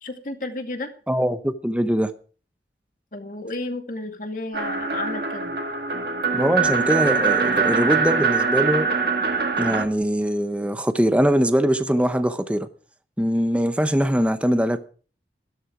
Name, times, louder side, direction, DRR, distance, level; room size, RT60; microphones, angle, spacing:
voice 1, 0.0-0.9 3.1-5.6, left 2 dB, 45° left, 2.3 m, -32 dB
voice 2, 1.1-2.1 6.3-8.9 9.6-12.7 13.2-14.8, equal, 5° right, 0.8 m, -22 dB
sound 1, 4.5-9.9, right 4 dB, 55° right, 2.0 m, -23 dB
14.5 x 13.0 x 4.9 m
head